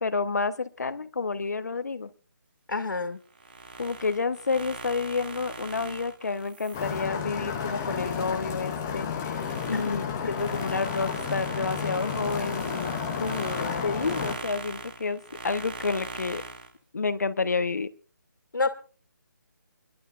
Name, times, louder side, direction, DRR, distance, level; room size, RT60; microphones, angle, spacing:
voice 1, 0.0-2.1 3.8-9.4 9.7-13.0 13.8-16.4 16.9-17.9, left 4 dB, 55° left, 13 dB, 1.0 m, -30 dB
voice 2, 2.7-3.2 9.7-9.8 10.3-10.4 13.2-13.8 18.5-18.7, left 3 dB, 85° left, 8 dB, 2.2 m, -29 dB
sound 1, 3.3-8.4 8.9-16.7, right 3 dB, 30° right, 1.5 m, -41 dB
sound 2, 6.7-14.3, left 7 dB, 10° left, 0.6 m, -32 dB
29.0 x 11.5 x 2.5 m, 0.37 s
hypercardioid pair, 175°, 10 cm